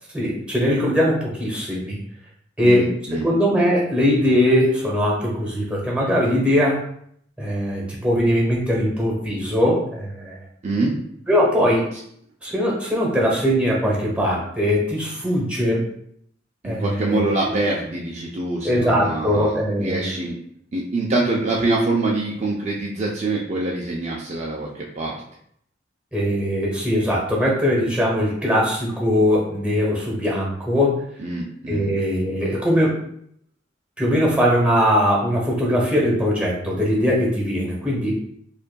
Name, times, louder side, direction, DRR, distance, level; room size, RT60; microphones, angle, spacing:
voice 1, 0.1-2.0 2.6-6.8 7.4-10.4 11.3-11.9 12.4-15.9 16.6-17.2 18.6-20.1 26.1-31.0 31.7-33.0 34.0-38.1, equal, 5° right, -3 dB, 1.0 m, -20 dB
voice 2, 2.6-3.3 10.6-11.0 16.6-20.3 20.7-25.2 31.2-31.9, right 2 dB, 35° right, -3 dB, 0.5 m, -24 dB
5.2 x 2.5 x 2.2 m, 0.68 s
head